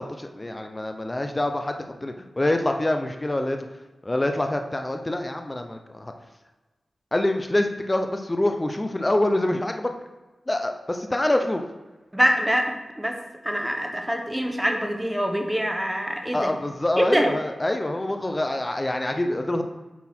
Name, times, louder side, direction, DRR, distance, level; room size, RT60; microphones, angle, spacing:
voice 1, 0.0-3.6 4.0-6.1 7.1-9.9 10.5-11.6 16.3-19.6, left 1 dB, 20° left, 5 dB, 0.6 m, -25 dB
voice 2, 12.1-16.5 17.0-17.3, equal, 5° right, 4 dB, 0.9 m, -25 dB
8.2 x 4.1 x 4.3 m, 1.2 s
wide cardioid pair, 100°, 0 cm